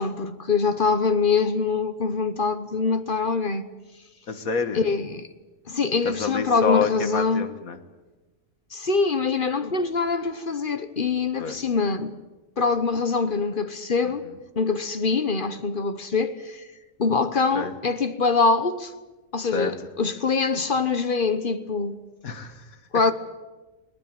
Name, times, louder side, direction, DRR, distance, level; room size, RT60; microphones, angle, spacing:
voice 1, 0.0-3.7 4.7-5.3 5.7-7.5 8.7-12.1 12.6-14.3 14.6-16.6 17.0-18.9 19.3-22.0 22.9-23.1, left 4 dB, 40° left, 1.2 m, -24 dB
voice 2, 4.3-4.8 6.1-7.8 11.4-11.7 14.1-14.2 17.5-17.7 19.4-19.9 22.2-22.8, left 5 dB, 85° left, 2.0 m, -28 dB
21.5 x 19.0 x 9.0 m
omnidirectional pair, 1.5 m